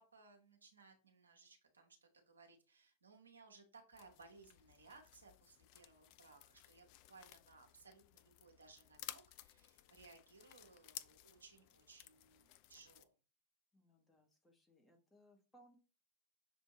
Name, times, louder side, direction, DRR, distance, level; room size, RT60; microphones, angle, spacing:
voice 1, 0.0-13.1, right 4 dB, 75° right, 3 dB, 0.9 m, -63 dB
sound 1, 3.9-13.0, left 14 dB, 45° left, 0.3 m, -57 dB
voice 2, 13.7-15.8, right 1 dB, 10° left, 2 dB, 1.0 m, -68 dB
6.1 x 2.6 x 2.9 m, 0.34 s
figure-of-eight pair, 90°, 0 cm